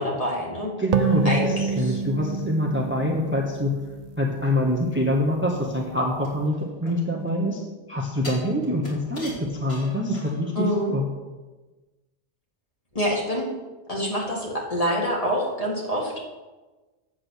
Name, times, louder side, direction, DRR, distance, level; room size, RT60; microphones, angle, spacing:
voice 1, 0.0-0.7 1.2-2.0 6.8-6.9 10.6-10.9 12.9-13.5 13.9-16.2, equal, 30° left, -2 dB, 2.2 m, -26 dB
voice 2, 0.8-3.7 4.2-7.6 7.9-10.7 10.9-11.0, equal, 10° right, 0 dB, 1.0 m, -25 dB
sound 1, 0.9-4.4, right 5 dB, 50° right, 0.5 m, -27 dB
sound 2, 6.2-7.4 8.2-10.6 11.0-11.1, left 1 dB, 60° left, 2.9 m, -41 dB
8.7 x 7.4 x 6.4 m, 1.2 s
omnidirectional pair, 1.2 m